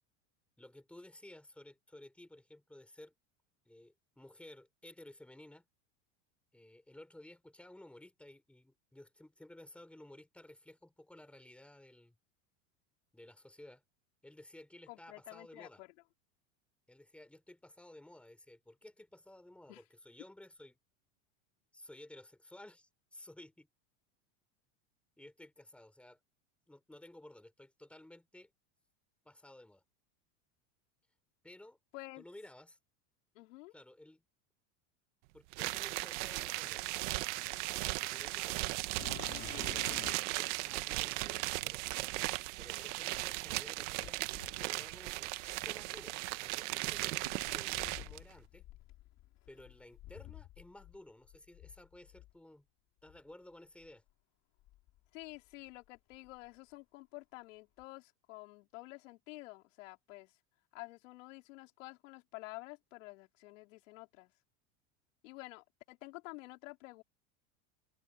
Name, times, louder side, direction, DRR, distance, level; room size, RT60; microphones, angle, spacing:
voice 1, 0.6-3.1 3.6-5.6 6.5-12.2 13.1-13.8 14.2-15.8 16.9-20.8 21.7-23.7 25.2-26.2 26.7-28.5 29.2-29.8 31.4-31.8 32.2-32.8 33.7-34.2 35.3-36.9 37.9-38.7 39.3-41.8 42.6-46.2 46.4-48.6 49.5-52.7 53.0-54.0, left 1 dB, 5° left, 4.4 m, -55 dB
voice 2, 14.9-15.9 19.7-19.8 31.9-32.2 33.3-33.7 55.1-60.3 60.7-64.3 65.2-67.0, left 21 dB, 75° left, 4.1 m, -50 dB
sound 1, 35.5-48.2, right 22 dB, 65° right, 1.5 m, -37 dB
sound 2, 39.0-40.4 41.2-41.3 44.0-46.1 47.2-51.0 51.2-52.3 53.1-53.2 53.8-53.9 54.6-55.7 56.0-56.5 57.8-57.9, left 16 dB, 45° left, 3.5 m, -51 dB
supercardioid pair, 140°, 38 cm